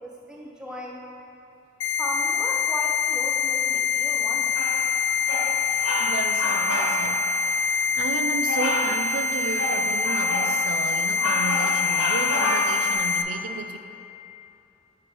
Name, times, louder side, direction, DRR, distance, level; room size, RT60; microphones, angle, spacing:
voice 1, 0.0-1.1 2.0-4.5, equal, 5° right, -2 dB, 0.5 m, -36 dB
sound 1, 1.8-13.2, left 5 dB, 65° left, 0.4 m, -25 dB
Bird vocalization bird call bird song, 4.5-4.9 5.3-5.5 5.8-6.1 6.3-6.9 7.3-7.4 8.5-8.9 9.4-10.5 10.9-12.9, left 1 dB, 85° left, 1.2 m, -28 dB
voice 2, 6.0-13.8, right 4 dB, 70° right, 7 dB, 0.3 m, -33 dB
7.7 x 3.1 x 4.6 m, 2.7 s
head